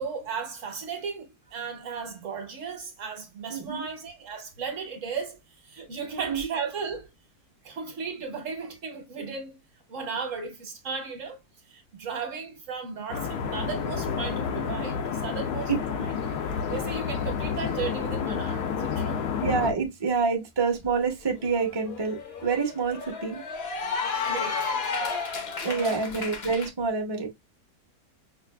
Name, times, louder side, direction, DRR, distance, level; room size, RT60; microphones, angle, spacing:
voice 1, 0.0-7.1 7.6-9.6 9.9-11.4 11.7-16.2 16.7-19.3 24.2-24.7 25.6-26.0, right 5 dB, 55° right, 1.2 m, -35 dB
voice 2, 3.5-3.9 6.1-6.5 15.7-15.8 19.4-23.4 25.6-27.3, right 5 dB, 25° right, 0.6 m, -27 dB
sound 1, 13.1-19.7, left 7 dB, 80° left, 1.3 m, -30 dB
Cheering / Applause, 20.8-20.9 21.3-26.7, left 5 dB, 50° left, 0.8 m, -32 dB
4.8 x 2.4 x 2.3 m
omnidirectional pair, 1.7 m